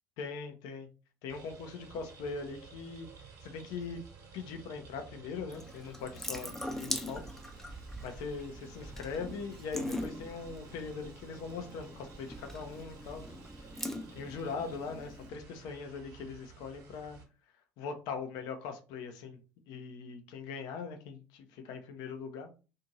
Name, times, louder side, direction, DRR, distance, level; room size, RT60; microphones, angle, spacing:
voice 1, 0.2-0.9 1.2-3.1 3.4-4.0 4.3-13.7 14.1-17.2 17.8-19.4 19.7-22.5, left 5 dB, 60° left, 0.6 m, -41 dB
sound 1, 1.3-17.2, right 5 dB, 45° right, 1.1 m, -53 dB
Water tap faucet / Sink (filling or washing) / Drip, 5.5-15.3, left 1 dB, 5° left, 0.5 m, -42 dB
2.6 x 2.5 x 2.8 m
figure-of-eight pair, 55°, 8 cm